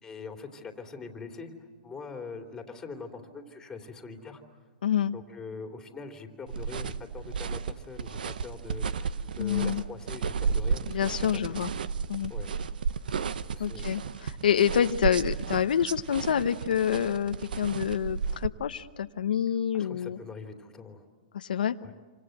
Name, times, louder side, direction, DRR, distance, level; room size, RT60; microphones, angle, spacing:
voice 1, 0.0-1.5 1.8-4.4 5.1-11.7 12.3-12.6 13.5-14.0 19.7-21.0 21.8-21.9, left 4 dB, 10° left, 4 dB, 3.1 m, -43 dB
voice 2, 4.8-5.1 9.4-9.8 10.9-11.7 12.1-12.3 13.6-20.2 21.3-21.8, left 9 dB, 80° left, 9 dB, 0.9 m, -27 dB
sound 1, 6.5-18.5, right 6 dB, 80° right, 1.0 m, -33 dB
27.5 x 26.0 x 7.9 m, 1.4 s
hypercardioid pair, 140°, 5 cm